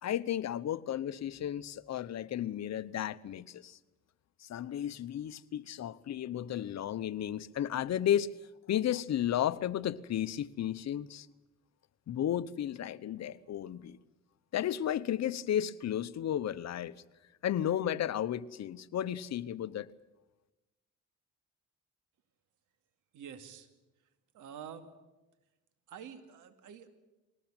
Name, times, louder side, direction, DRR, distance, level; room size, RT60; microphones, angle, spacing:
voice 1, 0.0-3.8 4.4-8.3 8.7-11.3 12.1-14.0 14.5-16.9 17.4-19.9, left 11 dB, 60° left, 1.0 m, -33 dB
voice 2, 23.1-23.7 24.3-24.9 25.9-26.9, right 8 dB, 85° right, 2.5 m, -47 dB
22.0 x 18.5 x 8.9 m
cardioid pair, 90°, 30 cm